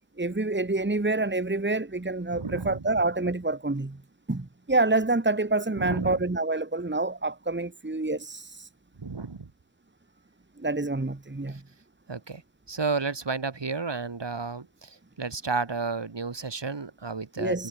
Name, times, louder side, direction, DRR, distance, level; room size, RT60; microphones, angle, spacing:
voice 1, 0.2-4.0 4.3-8.7 10.6-11.6 17.4-17.7, right 2 dB, 25° right, 2.3 m, -27 dB
voice 2, 2.3-3.1 5.8-6.2 9.0-9.5 12.1-12.4 12.7-17.7, right 4 dB, 70° right, 4.2 m, -32 dB
wide cardioid pair, 70°, 44 cm